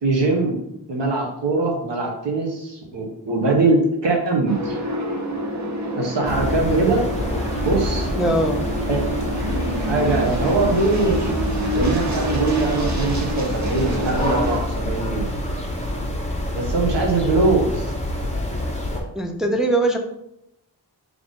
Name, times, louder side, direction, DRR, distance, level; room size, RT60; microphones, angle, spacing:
voice 1, 0.0-0.6 0.9-4.8 6.0-7.0 7.6-8.1 8.9-9.0 9.8-11.2 11.7-15.3 16.5-17.9, right 3 dB, 80° right, 0 dB, 1.2 m, -22 dB
sound 1, 4.5-14.6, right 1 dB, 40° right, 0.8 m, -28 dB
sound 2, 6.2-19.0, left 1 dB, 15° left, 0.9 m, -26 dB
voice 2, 8.1-8.6 19.1-20.0, right 1 dB, ahead, 2 dB, 0.5 m, -21 dB
3.9 x 3.4 x 3.6 m, 0.80 s
wide cardioid pair, 105°, 42 cm